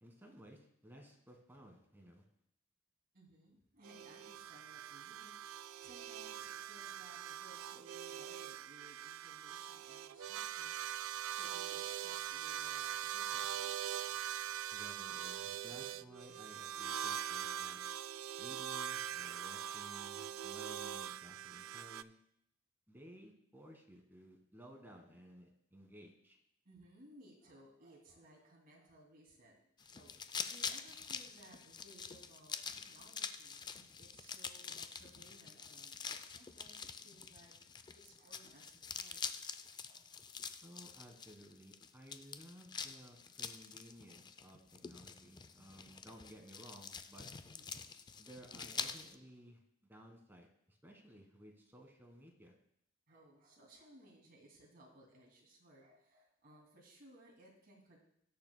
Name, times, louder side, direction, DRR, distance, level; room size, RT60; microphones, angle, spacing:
voice 1, 0.0-2.2 14.7-17.8 18.4-22.1 22.9-26.4 40.6-47.3 48.2-52.5, equal, 10° right, 2 dB, 1.5 m, -57 dB
voice 2, 3.1-14.0 15.7-16.2 19.3-19.4 21.2-21.3 21.7-21.8 24.7-25.1 26.6-37.5 37.9-39.2 39.5-40.3 47.5-47.9 53.1-58.0, right 1 dB, 50° right, -2 dB, 2.5 m, -62 dB
sound 1, 3.8-22.0, right 10 dB, 90° right, 0.3 m, -42 dB
sound 2, 29.8-49.1, left 6 dB, 20° left, 0.3 m, -46 dB
18.5 x 6.7 x 2.2 m, 0.72 s
head